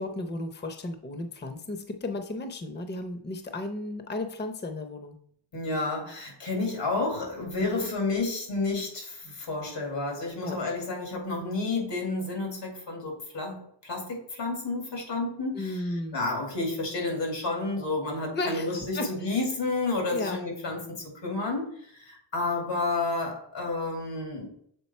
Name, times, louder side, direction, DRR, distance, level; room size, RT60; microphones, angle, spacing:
voice 1, 0.0-5.2 7.6-7.9 10.4-10.6 15.5-16.2 18.3-19.4 20.1-20.4, left 2 dB, 25° left, 7 dB, 0.7 m, -34 dB
voice 2, 5.5-15.8 16.1-24.5, left 3 dB, 85° left, 1 dB, 2.5 m, -31 dB
7.1 x 3.9 x 4.3 m, 0.65 s
wide cardioid pair, 100°, 43 cm